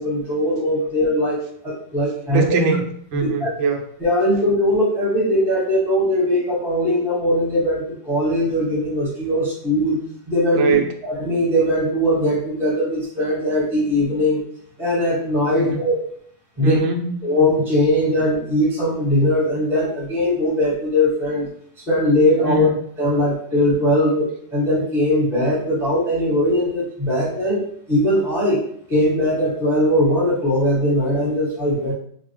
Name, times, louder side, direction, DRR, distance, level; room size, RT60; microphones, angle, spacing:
voice 1, 0.0-2.4 3.1-3.5 4.0-10.0 10.3-10.8 11.0-14.4 14.8-16.0 16.6-16.8 17.2-21.5 21.9-22.7 23.0-24.3 24.5-28.6 28.9-31.9, left 1 dB, ahead, -6 dB, 0.8 m, -20 dB
voice 2, 2.3-2.8 3.1-3.8 10.5-10.9 15.5-15.8 16.6-17.1 22.4-22.7, right 4 dB, 90° right, 4 dB, 1.3 m, -21 dB
3.2 x 2.3 x 3.0 m, 0.62 s
omnidirectional pair, 2.0 m